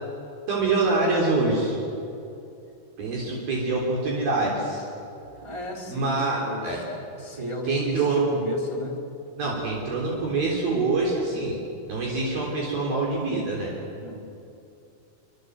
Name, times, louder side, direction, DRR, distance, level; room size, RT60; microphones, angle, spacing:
voice 1, 0.5-1.8 3.0-4.8 5.9-6.8 7.7-8.3 9.4-11.6 11.9-13.8, right 3 dB, 65° right, -2 dB, 5.4 m, -25 dB
voice 2, 5.4-9.0 9.4-9.7 14.0-14.2, right 1 dB, 5° right, 1 dB, 3.2 m, -34 dB
26.5 x 25.5 x 8.1 m, 2.7 s
omnidirectional pair, 4.6 m